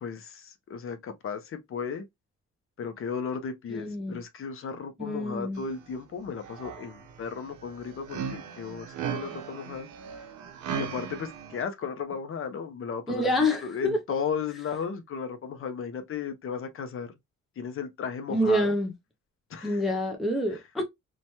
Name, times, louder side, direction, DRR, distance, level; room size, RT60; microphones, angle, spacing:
voice 1, 0.0-2.1 2.8-10.3 10.8-17.1 17.6-18.7 19.5-19.8 20.5-20.6, left 6 dB, 45° left, 0.6 m, -35 dB
voice 2, 3.7-4.2 5.0-5.6 13.1-14.0 18.3-18.9 19.6-20.8, left 1 dB, ahead, 0.4 m, -27 dB
sound 1, 5.6-5.9 6.2-11.6, right 7 dB, 75° right, 0.6 m, -37 dB
3.0 x 2.2 x 2.7 m
cardioid pair, 150°, 30 cm